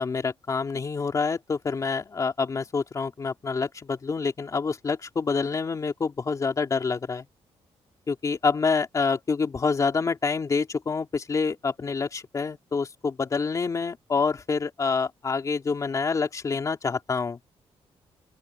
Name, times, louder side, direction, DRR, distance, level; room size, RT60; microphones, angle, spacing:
voice 1, 0.0-7.2 8.1-17.4, left 5 dB, 30° left, 2.8 m, -27 dB
open air
wide cardioid pair, 160°, 11 cm